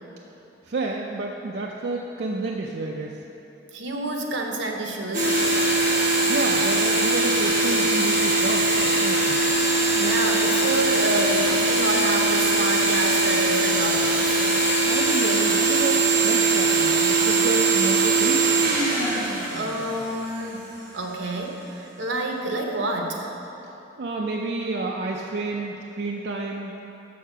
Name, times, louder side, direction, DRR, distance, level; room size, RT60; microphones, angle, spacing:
voice 1, 0.7-3.2 6.3-9.4 14.5-18.6 24.0-26.7, right 2 dB, 60° right, 0 dB, 0.4 m, -30 dB
voice 2, 3.7-5.6 9.9-14.4 19.5-23.3, right 2 dB, 80° right, 2 dB, 0.9 m, -28 dB
sound 1, 5.1-20.4, right 3 dB, 45° right, 1.6 m, -21 dB
6.6 x 6.5 x 5.6 m, 2.9 s
head